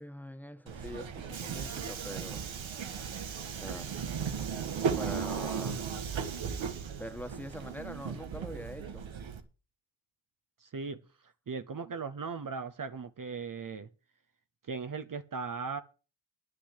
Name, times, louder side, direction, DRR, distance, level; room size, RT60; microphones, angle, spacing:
voice 1, 0.0-2.4 2.7-3.1 3.5-3.9 4.9-5.9 7.0-9.0, equal, 5° left, 1.5 m, -44 dB
Subway metro underground, 0.7-9.4, right 6 dB, 80° right, 1.5 m, -36 dB
voice 2, 10.6-13.9 14.7-15.8, right 5 dB, 45° right, 0.9 m, -38 dB
9.9 x 6.7 x 8.4 m
cardioid pair, 70°, 46 cm